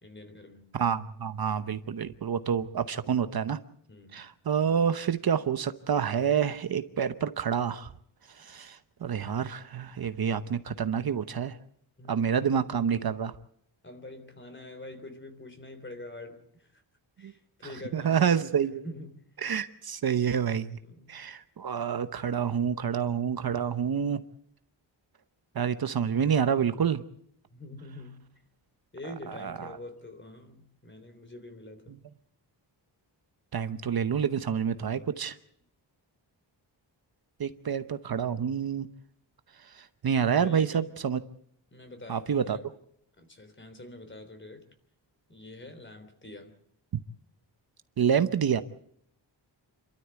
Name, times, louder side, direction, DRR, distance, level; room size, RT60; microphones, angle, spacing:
voice 1, 0.0-0.7 2.9-3.0 3.9-4.2 12.0-12.4 13.8-16.8 17.2-19.2 20.8-21.2 27.5-28.2 28.9-32.0 40.4-40.8 41.7-42.7 43.2-44.7 45.3-46.5, left 1 dB, 25° left, 8 dB, 3.4 m, -45 dB
voice 2, 0.8-3.6 4.1-7.9 8.4-11.5 12.1-13.3 17.2-17.3 17.9-18.8 19.4-20.8 21.1-24.2 25.6-27.0 29.4-29.7 33.5-35.3 37.4-38.9 40.0-41.2 42.1-42.6 48.0-48.6, right 7 dB, 55° right, 11 dB, 0.9 m, -28 dB
28.0 x 13.0 x 8.2 m, 0.70 s
wide cardioid pair, 145°, 44 cm